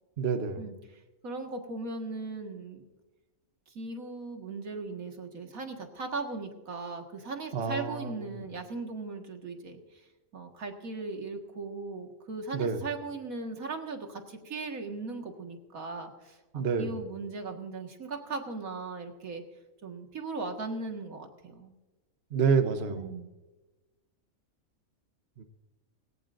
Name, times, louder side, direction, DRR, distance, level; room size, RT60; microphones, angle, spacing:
voice 1, 0.2-0.7 7.5-8.4 12.5-12.8 16.5-17.0 22.3-23.2 25.4-25.5, right 5 dB, 50° right, 7 dB, 1.1 m, -29 dB
voice 2, 1.2-2.9 3.7-10.0 10.3-19.4 19.8-21.7 22.9-23.3, right 3 dB, 75° right, 3 dB, 2.2 m, -38 dB
19.0 x 17.5 x 2.6 m, 1.1 s
omnidirectional pair, 1.5 m